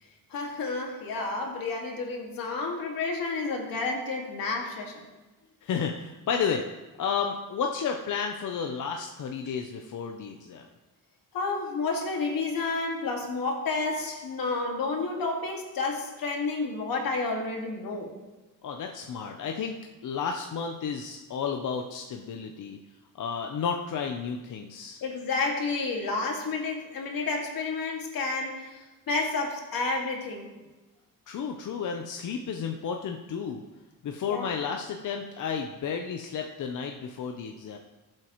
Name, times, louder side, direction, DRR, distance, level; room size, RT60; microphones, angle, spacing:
voice 1, 0.3-5.1 11.3-18.1 25.0-30.5 34.3-34.5, left 3 dB, 90° left, 1 dB, 2.1 m, -30 dB
voice 2, 5.6-6.7 7.0-10.7 18.6-19.8 20.0-22.8 23.1-25.0 31.3-33.6 34.0-37.8, left 6 dB, 60° left, 3 dB, 0.8 m, -32 dB
19.0 x 7.6 x 3.1 m, 1.1 s
wide cardioid pair, 170°, 34 cm